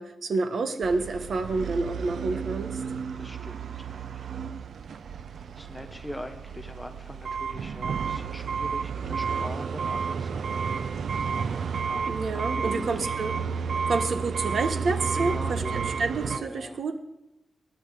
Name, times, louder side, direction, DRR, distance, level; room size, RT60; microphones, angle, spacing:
voice 1, 0.0-2.8 12.1-13.4 13.9-17.0, right 3 dB, 60° right, 8 dB, 1.2 m, -29 dB
sound 1, 0.8-16.4, right 6 dB, 75° right, 0.6 m, -31 dB
voice 2, 2.3-2.6 3.2-4.3 5.6-10.6 11.7-13.1 15.1-15.8 16.2-16.8, left 1 dB, 5° left, 7 dB, 0.7 m, -42 dB
20.5 x 10.0 x 4.9 m, 0.96 s
wide cardioid pair, 180°, 0 cm